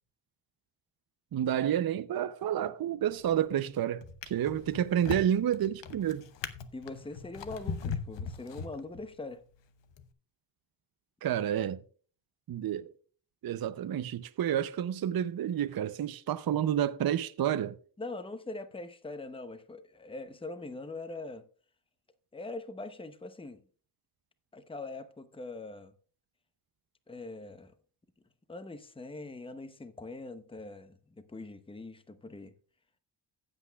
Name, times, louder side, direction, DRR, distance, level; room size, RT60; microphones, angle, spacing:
voice 1, 1.3-6.3 11.2-11.8 12.5-12.9 13.4-17.7, right 10 dB, 55° right, 0.6 m, -30 dB
Drawer open or close, 3.0-3.5 4.0-9.2 9.9-10.1, left 6 dB, 75° left, 0.9 m, -40 dB
voice 2, 6.7-9.4 18.0-21.5 22.3-23.6 24.5-25.9 27.1-27.7 28.5-32.5, left 2 dB, 10° left, 0.7 m, -42 dB
15.5 x 8.1 x 2.3 m
wide cardioid pair, 100°, 45 cm